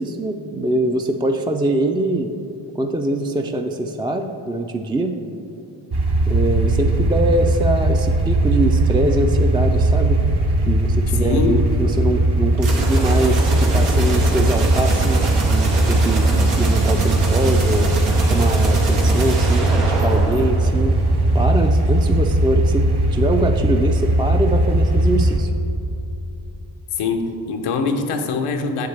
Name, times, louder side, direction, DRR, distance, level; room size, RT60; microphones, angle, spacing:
voice 1, 0.0-2.3 2.7-5.2 6.3-10.2 10.7-17.9 18.2-21.0 21.3-25.5, right 1 dB, 10° right, 4 dB, 0.3 m, -23 dB
sound 1, 5.9-25.4, right 1 dB, 50° right, 1.1 m, -18 dB
voice 2, 11.2-11.7 27.0-28.9, left 4 dB, 90° left, 5 dB, 0.7 m, -23 dB
sound 2, 12.6-21.2, right 2 dB, 85° right, 1.1 m, -26 dB
7.0 x 6.7 x 3.3 m, 2.7 s
supercardioid pair, 40°, 50 cm